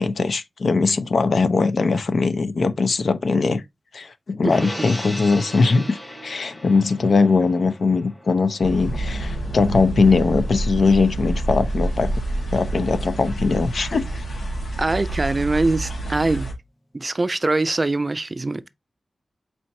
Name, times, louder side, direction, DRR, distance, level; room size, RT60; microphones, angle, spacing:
voice 1, 0.0-3.6 3.9-12.1 12.5-14.1, left 4 dB, 70° left, 0.6 m, -20 dB
Gong, 4.5-11.1 11.5-11.6, equal, 25° left, 2.0 m, -38 dB
sound 1, 8.6-16.5, right 1 dB, 85° left, 1.5 m, -27 dB
voice 2, 14.8-16.5 16.9-18.7, right 2 dB, 35° right, 0.4 m, -23 dB
4.5 x 4.4 x 2.7 m
wide cardioid pair, 85°, 0 cm